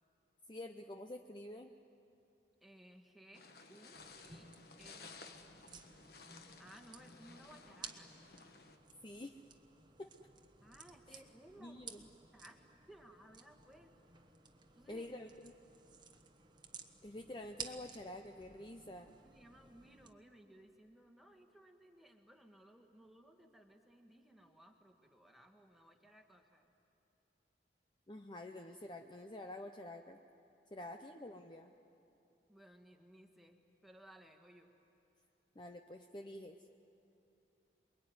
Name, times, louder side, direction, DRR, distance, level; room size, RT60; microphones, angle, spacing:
voice 1, 0.5-1.7 9.0-9.3 10.0-10.1 11.1-11.2 11.6-12.1 14.9-15.5 17.0-19.1 28.1-30.2 30.7-31.7 35.6-36.6, left 1 dB, 25° left, 5 dB, 0.7 m, -48 dB
voice 2, 2.6-4.5 4.8-5.4 6.6-8.1 10.6-12.0 12.3-13.9 14.8-15.1 19.2-26.7 30.7-31.0 32.5-34.7, right 1 dB, ahead, 3 dB, 1.7 m, -60 dB
sound 1, 3.3-8.8, left 4 dB, 55° left, 1.4 m, -57 dB
sound 2, 3.9-20.1, right 5 dB, 25° right, 1.2 m, -56 dB
27.5 x 22.0 x 9.6 m, 2.8 s
head